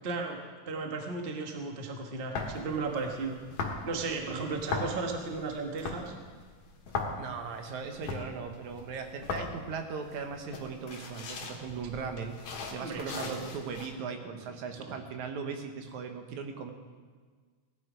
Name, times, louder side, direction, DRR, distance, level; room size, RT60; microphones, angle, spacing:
voice 1, 0.0-0.4 0.7-3.4 3.8-6.1 12.8-13.5 14.3-14.4 14.7-14.9, right 3 dB, 35° right, 2 dB, 0.8 m, -35 dB
sound 1, 2.3-13.9, left 4 dB, 70° left, 2.9 m, -39 dB
voice 2, 7.2-16.7, right 5 dB, 80° right, 5 dB, 2.6 m, -38 dB
17.5 x 11.5 x 5.1 m, 1.5 s
omnidirectional pair, 3.3 m